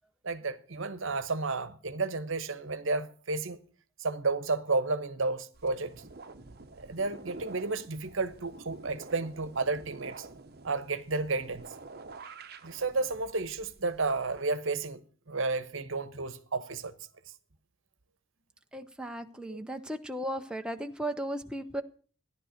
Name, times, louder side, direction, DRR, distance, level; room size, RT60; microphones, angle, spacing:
voice 1, 0.2-3.6 4.0-5.9 6.8-10.3 10.6-11.6 12.6-15.0 15.3-16.9 19.5-19.6, right 3 dB, 65° right, 1.0 m, -32 dB
sound 1, 5.5-14.4, right 3 dB, 45° right, 0.9 m, -49 dB
voice 2, 18.7-21.8, right 1 dB, 5° right, 0.6 m, -36 dB
14.5 x 11.0 x 6.4 m
head